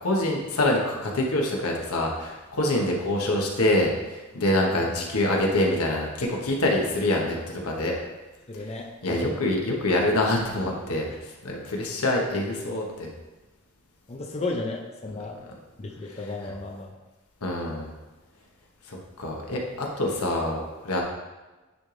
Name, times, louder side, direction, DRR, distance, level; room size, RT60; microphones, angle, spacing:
voice 1, 0.0-8.0 8.6-8.7 9.0-13.1 16.1-16.2 16.4-16.5 17.4-17.9 18.9-21.0, left 1 dB, 85° left, 0 dB, 1.2 m, -25 dB
voice 2, 8.5-9.4 14.1-15.4 15.8-16.9, left 2 dB, 30° left, 0 dB, 0.6 m, -34 dB
9.7 x 3.4 x 3.8 m, 1.2 s
head